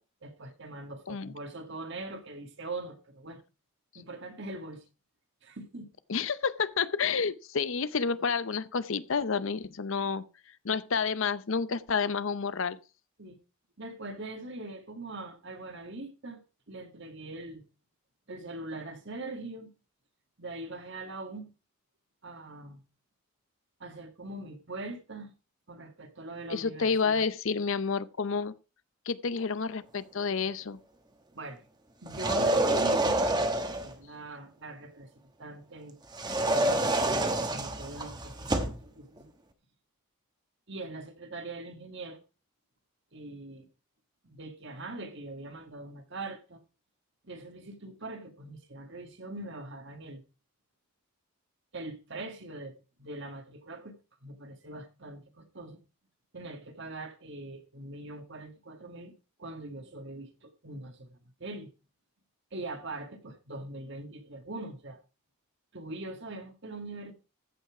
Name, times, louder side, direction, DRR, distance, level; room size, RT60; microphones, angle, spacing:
voice 1, 0.2-3.4 4.0-4.8 5.4-5.9 13.2-13.4 13.8-16.4 16.7-17.6 18.3-19.7 20.4-21.5 22.2-22.8 23.8-25.3 25.7-27.3 31.3-31.6 32.0-33.3 33.8-36.0 36.5-39.3 40.7-42.2 43.1-43.7 44.2-46.6 47.2-50.2 51.7-53.9 54.2-55.8 56.3-59.1 59.4-61.7 62.5-65.0 65.7-67.1, right 2 dB, 55° right, 1.8 m, -42 dB
voice 2, 6.1-10.3 10.6-12.8 26.5-28.5 29.1-30.8, left 5 dB, 60° left, 0.6 m, -29 dB
Sliding Glass Door, 32.1-33.9 36.1-38.8, right 1 dB, 20° right, 1.1 m, -27 dB
14.5 x 5.7 x 4.8 m
head